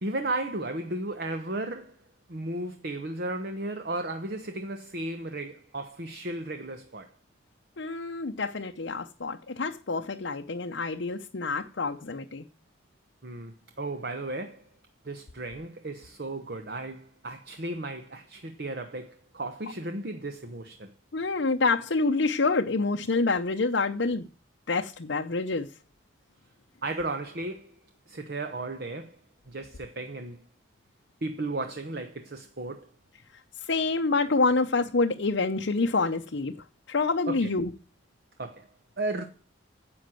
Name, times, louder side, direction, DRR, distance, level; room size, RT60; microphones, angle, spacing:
voice 1, 0.0-2.0 2.3-7.1 13.2-14.6 15.0-20.9 26.8-27.8 28.1-29.2 29.5-30.4 31.2-32.9 37.3-37.5 38.4-38.7 39.0-39.2, right 2 dB, 50° right, 1.1 m, -34 dB
voice 2, 7.8-12.5 21.1-24.2 24.7-25.7 33.6-36.6 36.9-37.7, left 3 dB, 60° left, 0.7 m, -27 dB
10.5 x 7.9 x 7.6 m
head